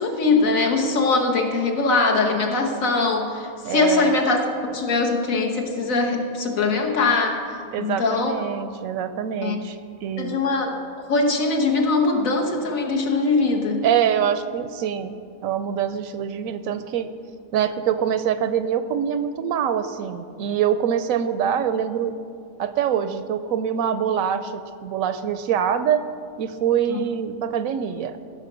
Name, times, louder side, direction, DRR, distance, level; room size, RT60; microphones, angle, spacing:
voice 1, 0.0-4.4 4.7-7.4 7.8-8.3 9.4-9.6 10.2-13.8 26.9-27.0, left 3 dB, 80° left, 2 dB, 1.6 m, -22 dB
voice 2, 3.6-4.2 7.7-9.8 10.0-10.4 13.8-15.2 15.4-17.1 17.5-22.1 22.6-26.0 26.4-28.2, right 8 dB, 90° right, 11 dB, 1.0 m, -24 dB
16.5 x 6.2 x 5.1 m, 2.3 s
omnidirectional pair, 1.4 m